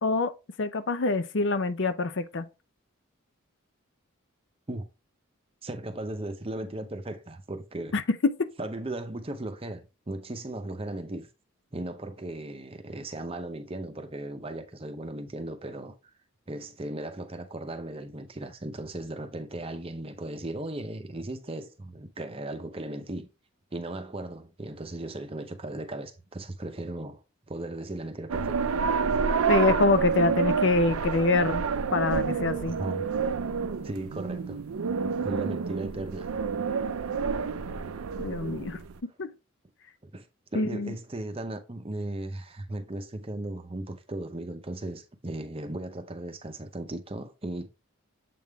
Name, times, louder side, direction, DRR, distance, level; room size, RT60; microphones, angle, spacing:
voice 1, 0.6-2.5 7.9-8.5 29.5-31.6 31.9-32.8 38.2-38.8 39.2-39.3 40.5-40.9, left 3 dB, 55° left, 0.5 m, -25 dB
voice 2, 5.6-7.9 8.6-11.3 11.7-15.9 16.5-23.3 23.7-27.2 27.5-28.7 32.7-33.1 33.8-34.6 35.2-36.3 40.0-40.3 40.5-47.7, right 1 dB, 25° right, 0.7 m, -37 dB
sound 1, 28.3-39.0, right 5 dB, 90° right, 0.5 m, -29 dB
7.6 x 3.6 x 3.5 m
head